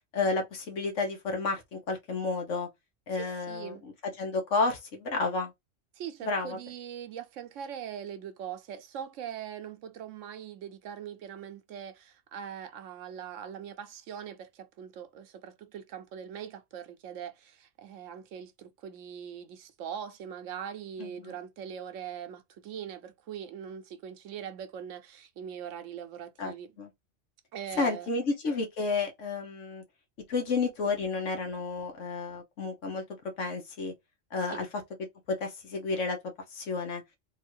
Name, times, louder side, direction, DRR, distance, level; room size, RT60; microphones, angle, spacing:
voice 1, 0.1-2.7 3.1-3.9 4.2-5.5 6.2-6.6 21.0-21.3 26.4-26.9 27.8-29.8 30.3-33.0 33.4-33.9 34.3-34.7 35.3-36.2 36.5-37.0, left 3 dB, 80° left, 1.5 m, -31 dB
voice 2, 3.1-3.8 5.9-26.7 27.5-28.1 34.4-34.6, right 8 dB, 80° right, 1.0 m, -41 dB
3.6 x 2.5 x 4.4 m
omnidirectional pair, 1.3 m